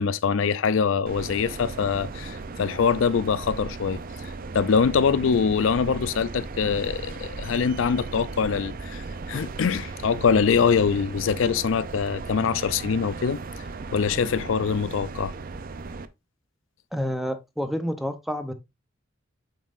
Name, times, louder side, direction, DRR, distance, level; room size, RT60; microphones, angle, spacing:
voice 1, 0.0-13.4 13.9-15.3, left 6 dB, 90° left, 0.4 m, -24 dB
sound 1, 1.1-16.1, right 3 dB, 45° right, 0.5 m, -36 dB
voice 2, 16.9-18.5, equal, ahead, 0.7 m, -29 dB
7.2 x 5.4 x 2.5 m
head